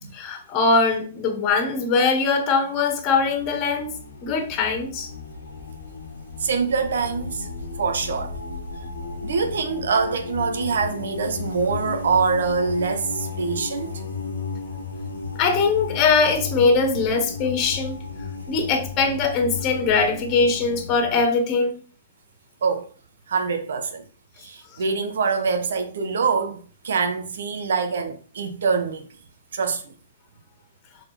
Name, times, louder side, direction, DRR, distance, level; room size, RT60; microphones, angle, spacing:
voice 1, 0.1-3.9 4.2-5.1 15.4-18.0 18.5-21.8, left 4 dB, 35° left, 1.7 m, -21 dB
sound 1, 1.9-2.2 2.7-21.3, left 4 dB, 75° left, 1.4 m, -34 dB
voice 2, 6.4-7.5 7.8-8.4 9.2-14.0 22.6-22.9 23.3-24.0 24.4-29.1 29.5-29.9, right 5 dB, 65° right, 1.1 m, -24 dB
6.7 x 4.2 x 4.2 m
figure-of-eight pair, 115°, 0 cm